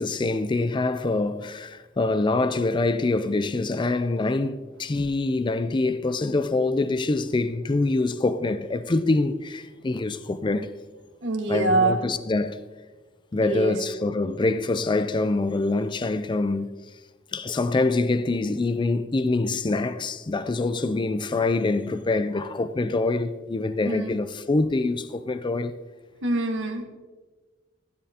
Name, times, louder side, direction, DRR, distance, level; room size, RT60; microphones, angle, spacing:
voice 1, 0.0-10.7 11.5-12.6 13.3-16.7 17.3-25.7, left 3 dB, 25° left, 0.4 m, -25 dB
voice 2, 11.2-12.0 13.4-13.8 23.8-24.2 26.2-26.9, right 2 dB, 80° right, 1.5 m, -24 dB
15.5 x 10.5 x 2.9 m
head